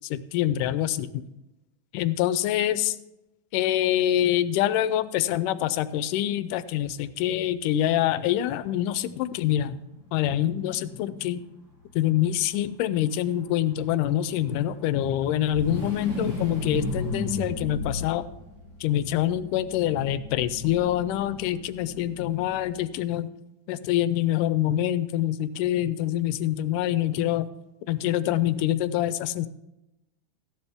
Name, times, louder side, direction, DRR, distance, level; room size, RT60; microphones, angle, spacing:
voice 1, 0.0-1.1 1.9-3.0 3.5-9.8 10.1-11.4 12.0-18.2 18.8-23.3 23.7-27.5 27.9-29.5, left 12 dB, 80° left, 14 dB, 2.1 m, -25 dB
sound 1, 6.8-6.9 7.2-7.3 8.9-11.5 13.8-22.8, left 2 dB, 50° right, 4.6 m, -35 dB
14.5 x 10.5 x 3.5 m, 0.93 s
omnidirectional pair, 3.8 m